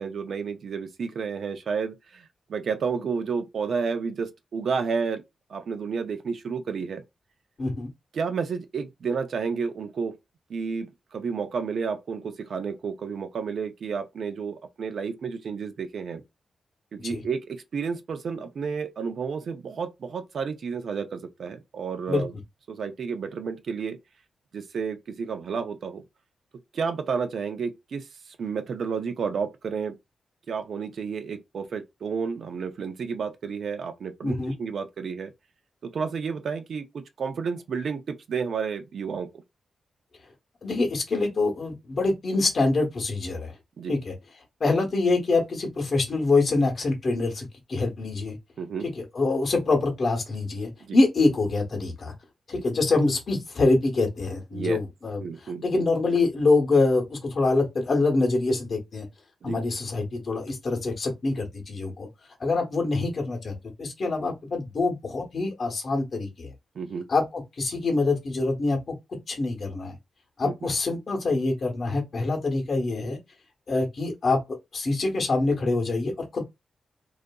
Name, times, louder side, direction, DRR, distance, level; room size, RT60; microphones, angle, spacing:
voice 1, 0.0-5.2 5.5-7.0 8.1-10.2 10.5-16.2 16.9-22.3 22.7-24.0 24.5-26.0 26.7-30.0 30.5-35.3 35.8-39.3 43.8-44.0 48.6-48.9 50.8-51.0 54.5-54.8 55.2-55.7 59.4-59.6 66.7-67.1 70.4-70.7, right 5 dB, 65° right, 0.4 m, -31 dB
voice 2, 7.6-7.9 17.0-17.2 22.1-22.2 34.2-34.5 40.6-43.5 43.9-44.1 44.6-48.3 49.0-52.1 52.5-55.2 55.6-59.1 59.4-62.1 62.4-66.5 67.1-68.8 69.3-70.0 70.4-73.2 73.7-76.5, left 3 dB, 50° left, 0.8 m, -25 dB
2.6 x 2.4 x 2.2 m
cardioid pair, 100°, 0 cm